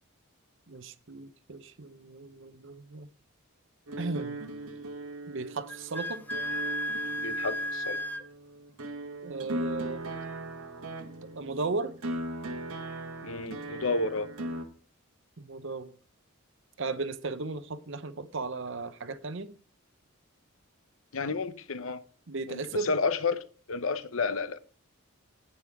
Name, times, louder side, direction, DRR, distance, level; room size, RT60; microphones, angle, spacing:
voice 1, 0.7-3.1 4.0-4.4 5.3-6.2 9.2-10.0 11.4-12.0 15.4-15.9 16.8-19.5 22.3-22.9, right 3 dB, 60° right, 0.8 m, -35 dB
sound 1, 3.9-14.7, right 1 dB, 85° right, 1.6 m, -39 dB
Wind instrument woodwind instrument, 5.7-8.3, equal, 10° left, 0.5 m, -33 dB
voice 2, 7.2-8.0 13.2-14.3 21.1-22.0 22.5-24.6, left 4 dB, 70° left, 0.8 m, -31 dB
9.8 x 9.4 x 3.5 m
head